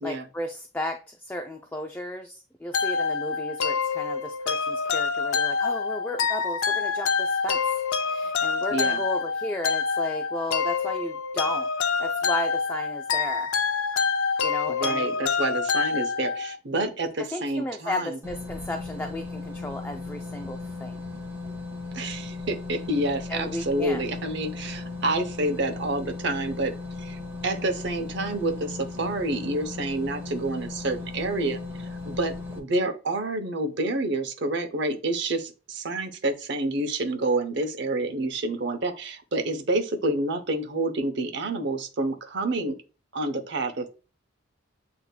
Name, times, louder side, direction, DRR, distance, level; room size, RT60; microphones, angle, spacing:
voice 1, 0.0-7.6 8.0-11.7 12.0-13.5 14.4-15.1 17.3-20.9 23.3-24.0, left 1 dB, 10° left, 4 dB, 0.3 m, -34 dB
sound 1, 2.7-16.6, left 5 dB, 85° left, 0.5 m, -26 dB
voice 2, 8.7-9.0 14.7-18.2 21.9-26.7 27.0-31.6 32.1-42.8 43.1-43.9, right 2 dB, 55° right, 6 dB, 0.8 m, -28 dB
sound 2, 18.2-32.6, left 3 dB, 10° right, 0.7 m, -37 dB
8.2 x 2.8 x 2.2 m, 0.34 s
head